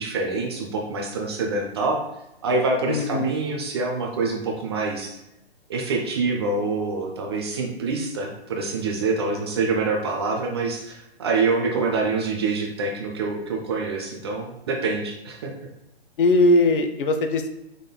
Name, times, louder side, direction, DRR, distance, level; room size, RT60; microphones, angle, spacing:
voice 1, 0.0-2.0 2.4-5.2 5.7-15.5, right 3 dB, 25° right, 1 dB, 0.4 m, -26 dB
voice 2, 2.9-3.3 16.2-17.5, left 2 dB, 55° left, 7 dB, 0.6 m, -19 dB
5.2 x 3.7 x 2.2 m, 0.86 s
hypercardioid pair, 140°, 32 cm